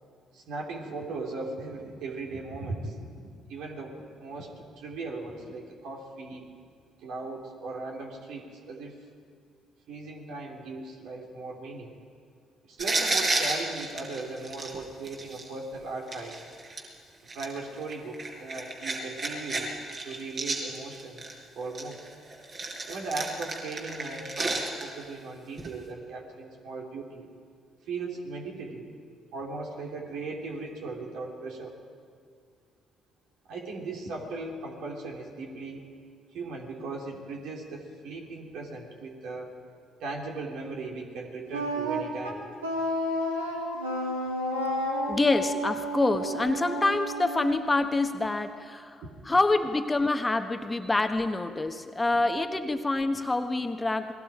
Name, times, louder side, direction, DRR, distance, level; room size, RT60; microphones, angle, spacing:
voice 1, 0.3-3.1 3.5-6.5 7.0-9.0 9.9-11.9 12.7-16.4 17.3-19.7 20.0-21.3 21.5-22.1 22.9-27.3 27.8-28.9 29.3-31.8 33.5-35.9 36.3-39.5 40.0-42.4 49.0-49.1, right 3 dB, 65° right, 0 dB, 3.4 m, -38 dB
sound 1, 12.8-15.5 16.1-16.8 17.3-19.6 19.9-21.3 21.7-25.0 25.6-25.7, right 2 dB, 45° right, 5.5 m, -31 dB
Wind instrument woodwind instrument, 41.5-48.4, equal, 90° right, 2.4 m, -32 dB
voice 2, 45.1-49.0 49.3-54.1, left 2 dB, 20° left, 7 dB, 1.3 m, -26 dB
29.0 x 20.5 x 5.1 m, 2.2 s
hypercardioid pair, 45°, 0 cm